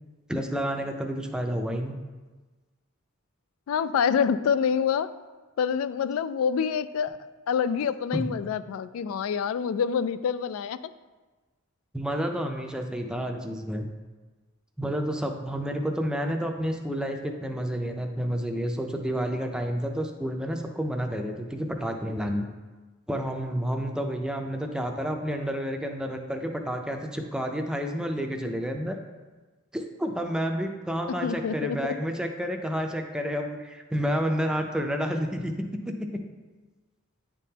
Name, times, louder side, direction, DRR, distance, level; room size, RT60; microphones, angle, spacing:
voice 1, 0.3-1.9 8.1-8.3 11.9-13.8 14.8-22.5 23.1-29.0 29.7-35.5 35.9-36.2, equal, 5° right, 3 dB, 0.4 m, -30 dB
voice 2, 3.7-5.1 5.6-7.2 7.5-10.8 31.2-31.9, left 7 dB, 90° left, 15 dB, 0.3 m, -26 dB
9.9 x 3.6 x 2.8 m, 1.3 s
head